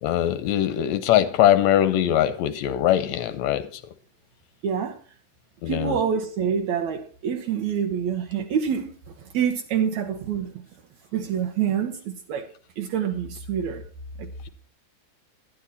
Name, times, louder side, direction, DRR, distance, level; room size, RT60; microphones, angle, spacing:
voice 1, 0.0-3.8 5.6-6.0, left 11 dB, 75° left, 1.9 m, -21 dB
voice 2, 4.6-5.0 5.7-10.5 11.1-12.5 12.8-13.8 14.2-14.5, right 8 dB, 75° right, 2.2 m, -27 dB
12.0 x 10.5 x 4.1 m
omnidirectional pair, 3.4 m